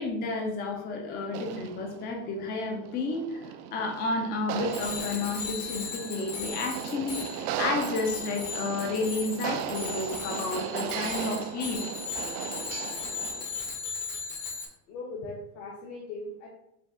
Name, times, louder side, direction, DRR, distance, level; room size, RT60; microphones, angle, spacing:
voice 1, 0.0-11.8, left 3 dB, 20° left, 3 dB, 0.4 m, -31 dB
sound 1, 1.3-13.6, right 9 dB, 75° right, 0.5 m, -37 dB
Bicycle bell, 4.7-14.7, left 5 dB, 40° left, 0.9 m, -37 dB
voice 2, 14.9-16.5, left 2 dB, 65° left, -3 dB, 1.1 m, -39 dB
5.0 x 2.3 x 3.6 m, 0.82 s
supercardioid pair, 150°, 46 cm